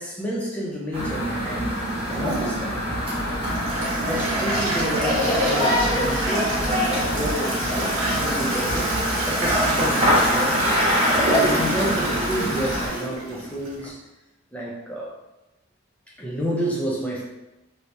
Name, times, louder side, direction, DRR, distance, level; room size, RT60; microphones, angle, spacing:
voice 1, 0.0-1.7 2.1-2.7 3.3-3.4 4.0-10.7 11.2-14.0 14.5-15.2 16.2-17.2, equal, 5° left, -4 dB, 0.6 m, -30 dB
sound 1, 0.9-12.9, equal, 25° right, 1.1 m, -24 dB
Toilet flush, 2.1-13.9, right 1 dB, 80° right, 0.9 m, -27 dB
3.2 x 2.9 x 2.6 m, 0.97 s
head